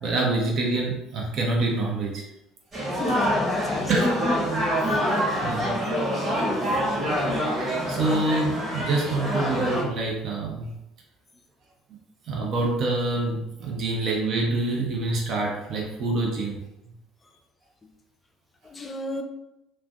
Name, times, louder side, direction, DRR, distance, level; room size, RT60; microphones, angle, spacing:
voice 1, 0.0-2.2 3.9-4.2 5.4-5.8 7.9-10.7 12.3-16.6, right 2 dB, 50° right, -1 dB, 0.6 m, -26 dB
sound 1, 2.7-9.8, equal, 30° right, 1.0 m, -26 dB
voice 2, 3.0-4.3 5.2-5.5 18.7-19.2, left 2 dB, 25° left, 4 dB, 0.4 m, -29 dB
2.4 x 2.1 x 2.4 m, 0.87 s
figure-of-eight pair, 60°, 0 cm